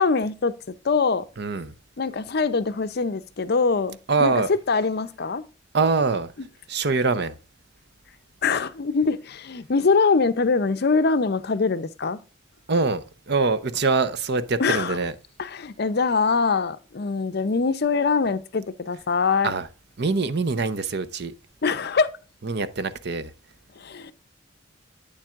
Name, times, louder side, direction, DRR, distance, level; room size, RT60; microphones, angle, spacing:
voice 1, 0.0-1.2 2.0-5.4 8.4-12.2 14.6-15.0 15.4-19.5 21.6-22.1 23.8-24.1, left 4 dB, 55° left, 0.6 m, -23 dB
voice 2, 1.4-1.7 4.1-4.5 5.7-6.3 6.7-7.3 12.7-15.1 19.4-19.7 20.0-21.3 22.4-23.3, right 4 dB, 60° right, 0.6 m, -24 dB
8.7 x 7.3 x 2.4 m
head